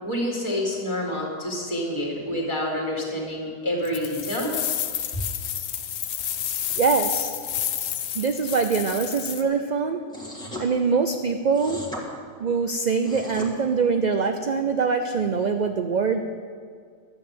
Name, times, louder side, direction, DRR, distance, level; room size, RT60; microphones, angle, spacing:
voice 1, 0.0-4.5 5.1-5.2, left 1 dB, 20° left, -2 dB, 2.3 m, -28 dB
sound 1, 3.8-9.4, left 9 dB, 60° left, 0.9 m, -30 dB
voice 2, 6.8-7.3 8.1-10.0 10.6-11.8 12.4-16.2, right 5 dB, 50° right, 6 dB, 0.5 m, -23 dB
sound 2, 10.1-10.7 11.5-12.0 12.9-13.5, left 1 dB, 5° left, 1.7 m, -36 dB
11.5 x 8.9 x 7.5 m, 2.1 s
omnidirectional pair, 1.3 m